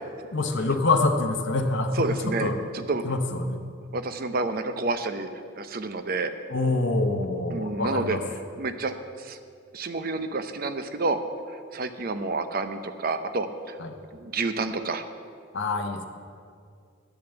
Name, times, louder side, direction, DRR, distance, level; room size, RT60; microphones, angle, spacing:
voice 1, 0.3-2.6 3.0-3.6 6.5-8.2 13.8-13.9 15.5-16.1, left 3 dB, 60° left, 3 dB, 0.8 m, -26 dB
voice 2, 2.0-2.5 2.7-3.0 3.9-5.3 5.6-6.3 7.5-8.2 8.6-9.4 9.7-11.2 11.5-13.8 14.1-15.0, right 3 dB, 45° right, 9 dB, 0.6 m, -29 dB
10.5 x 6.9 x 7.9 m, 2.3 s
head